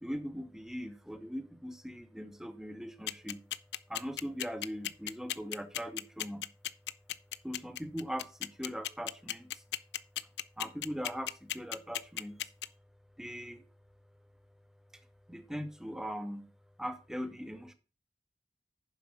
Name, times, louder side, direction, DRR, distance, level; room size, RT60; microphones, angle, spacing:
voice 1, 0.0-3.4 3.9-6.4 7.4-9.6 10.6-12.5 13.2-13.6 14.9-15.0 15.3-16.5 16.8-17.7, equal, 5° right, 9 dB, 0.8 m, -40 dB
sound 1, 3.1-12.7, left 12 dB, 75° left, 0.4 m, -35 dB
7.2 x 5.5 x 6.1 m, 0.35 s
head